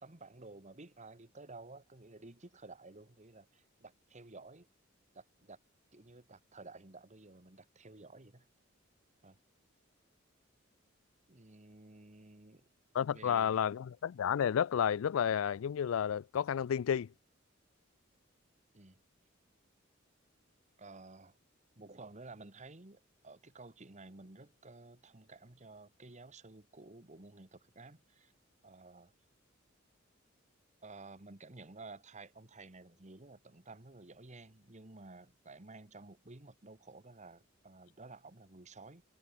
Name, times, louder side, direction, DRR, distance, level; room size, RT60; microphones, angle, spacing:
voice 1, 0.0-4.7 5.1-5.6 5.9-8.5 9.2-9.4 11.3-12.7 13.1-13.6 18.7-19.0 20.8-21.4 21.8-28.3 28.6-29.1 30.8-39.0, right 3 dB, 35° right, 1.7 m, -53 dB
voice 2, 12.9-17.1, left 8 dB, 90° left, 0.4 m, -31 dB
head